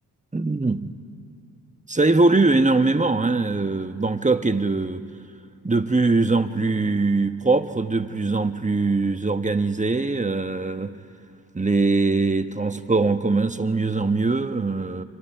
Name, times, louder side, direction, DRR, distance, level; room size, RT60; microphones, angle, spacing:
voice 1, 0.3-0.9 1.9-5.0 5.6-11.0 11.5-15.0, right 3 dB, 15° right, 9 dB, 1.2 m, -22 dB
27.0 x 25.5 x 4.6 m, 2.6 s
supercardioid pair, 40°, 44 cm